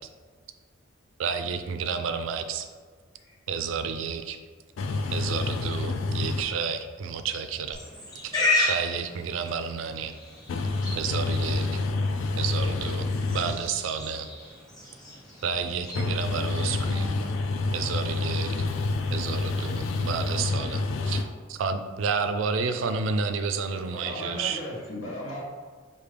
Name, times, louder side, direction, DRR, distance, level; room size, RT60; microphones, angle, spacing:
voice 1, 1.2-2.7 3.5-4.4 5.1-7.8 8.2-8.3 8.7-10.1 11.0-11.7 12.4-13.0 13.3-14.3 15.4-17.1 17.7-18.5 19.1-20.8 21.1-21.2 21.6-24.6, right 5 dB, 70° right, 9 dB, 0.3 m, -30 dB
voice 2, 4.8-6.4 10.5-13.5 15.9-21.3, left 3 dB, 70° left, 5 dB, 0.3 m, -28 dB
Livestock farm animals working animals, 7.7-18.6, left 2 dB, 20° left, 1.1 m, -34 dB
voice 3, 23.9-25.4, equal, 85° left, -5 dB, 1.3 m, -36 dB
4.9 x 2.6 x 3.3 m, 1.5 s
head